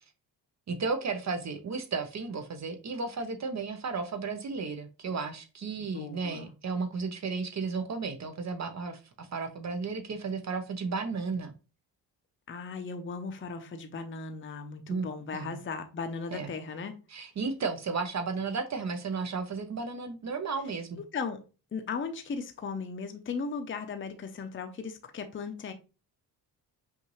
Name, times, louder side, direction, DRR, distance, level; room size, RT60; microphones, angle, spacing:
voice 1, 0.7-11.5 14.9-15.1 15.3-15.6 16.3-16.5 17.1-21.0, right 4 dB, 40° right, 0.8 m, -34 dB
voice 2, 5.8-6.5 12.5-17.0 21.1-21.4 21.7-25.7, left 5 dB, 30° left, 0.7 m, -37 dB
5.6 x 2.6 x 3.1 m
cardioid pair, 100°, 40 cm